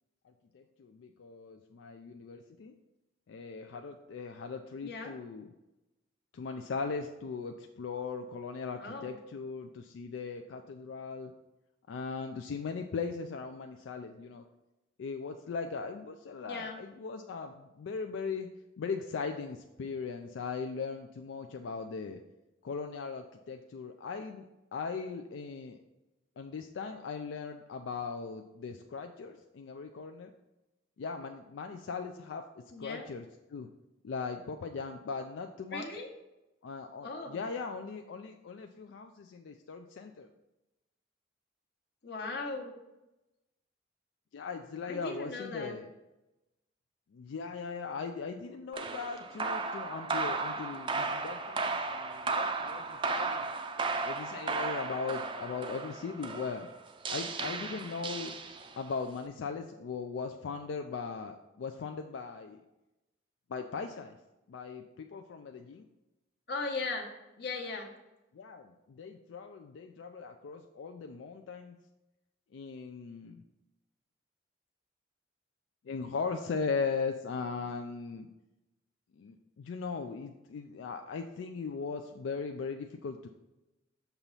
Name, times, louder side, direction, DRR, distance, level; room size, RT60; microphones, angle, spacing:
voice 1, 0.2-2.7 3.3-5.5 6.3-11.3 11.9-14.5 15.0-18.5 18.8-22.2 22.6-25.8 26.4-30.3 31.0-32.4 32.8-33.2 33.5-33.7 34.0-35.9 36.6-40.3 44.3-45.9 47.1-53.5 54.0-56.7 57.1-58.3 58.8-62.6 63.5-64.2 64.5-65.8 68.3-71.8 72.5-73.4 75.8-78.3 79.1-83.3, left 5 dB, 85° left, 5 dB, 0.4 m, -39 dB
voice 2, 4.8-5.1 8.8-9.1 16.5-16.8 32.7-33.0 35.7-36.1 37.0-37.4 42.0-42.8 44.9-45.7 66.5-67.1 67.4-67.9, left 3 dB, 60° left, 2 dB, 1.0 m, -38 dB
sound 1, 48.7-58.9, right 4 dB, 25° right, 0.4 m, -35 dB
6.7 x 3.0 x 5.5 m, 0.98 s
head